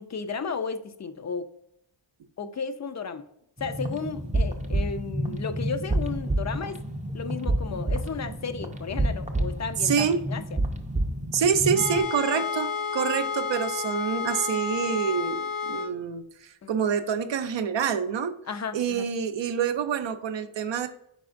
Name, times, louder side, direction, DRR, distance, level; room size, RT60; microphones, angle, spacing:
voice 1, 0.0-1.5 2.4-3.3 3.6-6.8 7.1-10.4 16.6-16.7 18.5-19.1, left 5 dB, 35° left, 10 dB, 0.4 m, -34 dB
sound 1, 3.6-12.0, right 1 dB, 15° right, 0.5 m, -29 dB
voice 2, 9.8-10.2 11.3-18.3 18.7-20.9, right 7 dB, 65° right, 9 dB, 0.6 m, -26 dB
sound 2, 11.7-15.9, left 5 dB, 80° left, 1.2 m, -31 dB
4.8 x 4.1 x 2.5 m, 0.73 s
cardioid pair, 60°, 49 cm